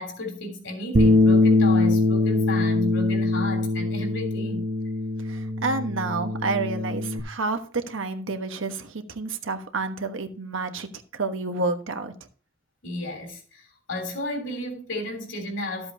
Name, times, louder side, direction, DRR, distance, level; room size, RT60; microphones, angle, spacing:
voice 1, 0.0-4.6 12.8-15.9, left 1 dB, 65° left, 3.3 m, -33 dB
Bass guitar, 0.9-7.2, left 2 dB, 40° right, 0.9 m, -22 dB
voice 2, 5.2-7.6 7.9-12.1, right 3 dB, 70° right, 1.2 m, -29 dB
13.0 x 7.8 x 2.8 m
head